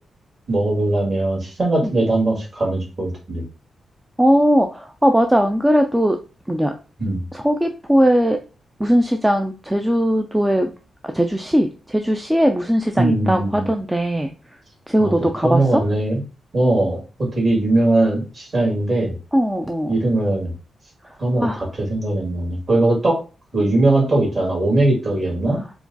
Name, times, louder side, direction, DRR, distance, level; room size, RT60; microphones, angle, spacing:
voice 1, 0.5-3.4 7.0-7.2 13.0-13.7 15.0-16.2 16.5-19.2 19.9-20.5 21.2-23.2 23.5-25.6, right 2 dB, 35° right, -2 dB, 2.0 m, -20 dB
voice 2, 4.2-6.2 6.5-6.7 7.3-8.4 8.8-10.7 11.0-14.3 14.9-15.8 19.3-19.9 21.4-21.7, equal, 5° right, 5 dB, 0.3 m, -19 dB
4.7 x 2.2 x 3.9 m, 0.33 s
wide cardioid pair, 155°, 0 cm